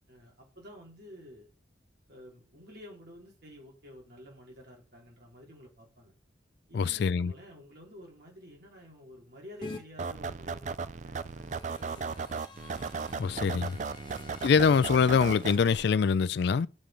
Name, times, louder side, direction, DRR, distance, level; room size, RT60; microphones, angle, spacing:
voice 1, 0.0-1.5 2.1-6.1 6.7-12.5 14.0-14.4, equal, 55° right, 3.6 m, -51 dB
voice 2, 6.7-7.3 13.2-13.8 14.4-16.7, left 6 dB, 60° left, 0.3 m, -24 dB
sound 1, 9.6-9.8 11.2-15.6, left 3 dB, 25° left, 1.1 m, -48 dB
sound 2, 10.0-15.8, right 5 dB, 40° right, 0.4 m, -36 dB
7.6 x 6.8 x 5.0 m
head